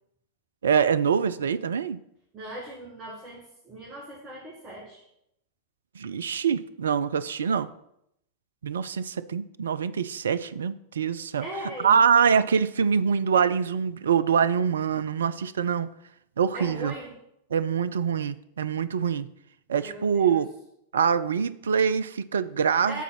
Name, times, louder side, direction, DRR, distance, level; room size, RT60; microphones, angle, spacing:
voice 1, 0.6-2.0 6.0-7.7 8.6-11.5 11.8-15.9 16.4-16.9 17.5-19.3 19.7-20.5 20.9-23.0, right 7 dB, 65° right, 15 dB, 0.3 m, -24 dB
voice 2, 2.3-5.0 11.4-12.0 16.5-17.2 19.8-20.4 22.9-23.0, right 1 dB, 25° right, -4 dB, 1.7 m, -39 dB
8.2 x 4.0 x 5.9 m, 0.77 s
figure-of-eight pair, 90°, 0 cm